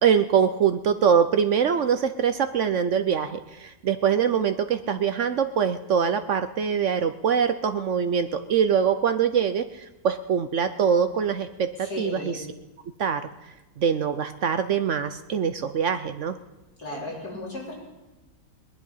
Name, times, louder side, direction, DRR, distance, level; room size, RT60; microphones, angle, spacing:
voice 1, 0.0-12.5 13.0-13.2 13.8-16.4, right 7 dB, 65° right, 9 dB, 0.7 m, -23 dB
voice 2, 11.9-12.4 16.8-17.7, left 2 dB, 60° left, -4 dB, 4.3 m, -34 dB
20.0 x 11.0 x 5.6 m, 1.1 s
omnidirectional pair, 1.8 m